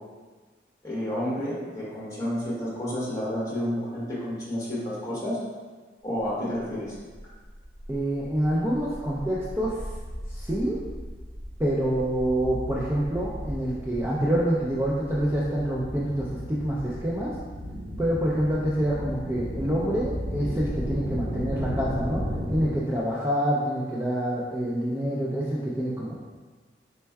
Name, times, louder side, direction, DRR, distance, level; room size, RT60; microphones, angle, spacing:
voice 1, 0.8-5.4 6.0-6.9, equal, 20° left, -8 dB, 1.2 m, -30 dB
sound 1, 6.9-22.7, equal, 75° right, 0.9 m, -35 dB
voice 2, 7.9-9.7 10.3-10.8 11.6-17.3 18.0-22.2 22.5-26.2, right 1 dB, 15° right, -7 dB, 0.4 m, -27 dB
4.3 x 4.3 x 2.2 m, 1.4 s
head